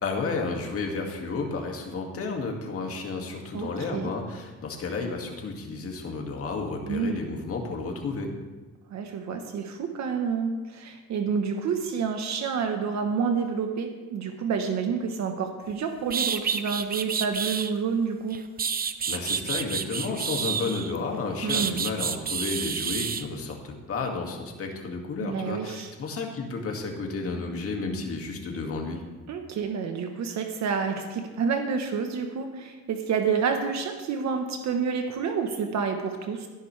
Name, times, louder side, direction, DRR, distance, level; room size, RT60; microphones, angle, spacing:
voice 1, 0.0-8.3 19.1-29.0, left 4 dB, 50° left, 1 dB, 2.3 m, -32 dB
voice 2, 3.5-4.1 6.9-7.2 8.9-18.4 21.4-21.8 25.2-25.9 29.3-36.5, right 6 dB, 65° right, 4 dB, 1.2 m, -29 dB
sound 1, 15.7-15.8 16.1-17.7 18.3-21.0 21.5-23.2, right 6 dB, 30° right, 0.7 m, -29 dB
17.0 x 10.5 x 3.4 m, 1.3 s
cardioid pair, 115°, 30 cm